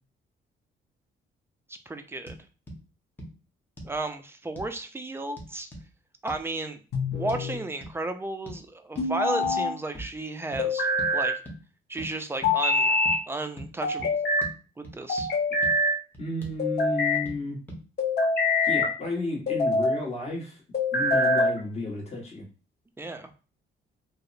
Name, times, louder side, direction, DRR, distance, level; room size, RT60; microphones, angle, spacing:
voice 1, 1.7-2.4 3.8-5.7 6.2-6.8 7.2-10.9 11.1-11.3 11.9-13.0 13.3-14.2 14.8-15.3 23.0-23.3, right 2 dB, 10° right, 8 dB, 0.4 m, -33 dB
sound 1, 2.3-2.4 2.7-2.8 3.2-3.3 3.8-4.0 4.6-4.7 5.4-5.9 6.3-6.4 7.3-7.4 7.8-8.0 8.5-8.6 9.0-9.1 9.4-9.6 9.9-10.1 10.5-10.7 11.0-11.1 11.5-11.6 12.0-12.1 12.4-12.6 13.0-13.2 13.6-13.7 14.0-14.1 14.4-14.5 14.8-15.3 15.6-15.7 16.1-16.6 17.3-17.4 17.7-17.8, equal, 10° left, 0.8 m, -40 dB
sound 2, 6.9-7.6 9.0-9.7 10.6-11.4 12.4-13.2 13.8-14.5 15.1-16.0 16.6-17.2 18.0-18.9 19.5-20.0 20.7-21.6, left 2 dB, 55° left, 0.8 m, -24 dB
voice 2, 16.2-17.6 18.6-20.6 20.9-22.4, left 2 dB, 30° left, -2 dB, 1.3 m, -32 dB
2.7 x 2.0 x 2.5 m, 0.35 s
cardioid pair, 90°, 20 cm